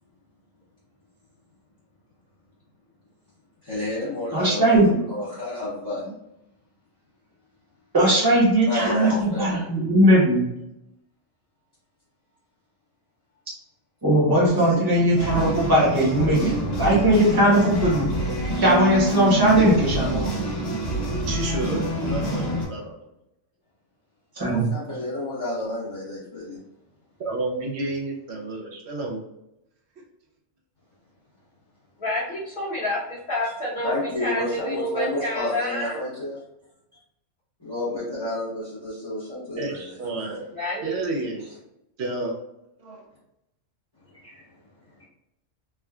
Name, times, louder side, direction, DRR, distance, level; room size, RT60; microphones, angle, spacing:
voice 1, 3.6-4.8 5.1-6.0 8.7-9.7 14.5-14.9 24.5-26.6 33.8-36.4 37.6-40.2 41.4-41.5 44.2-44.4, left 2 dB, 20° left, -10 dB, 0.8 m, -31 dB
voice 2, 4.3-5.0 7.9-10.4 14.0-18.1 18.6-20.3 24.4-24.6, right 1 dB, 20° right, -5 dB, 0.9 m, -19 dB
sound 1, 15.2-22.7, equal, 75° left, 1.4 m, -26 dB
voice 3, 19.3-19.8 21.3-23.0 27.2-29.2 39.5-40.6 40.8-41.5 42.0-42.4 42.8-43.1, right 2 dB, 65° right, -1 dB, 0.8 m, -30 dB
voice 4, 32.0-36.0 40.5-41.0, left 1 dB, 45° left, -12 dB, 1.2 m, -29 dB
3.5 x 2.1 x 2.3 m, 0.85 s
omnidirectional pair, 1.3 m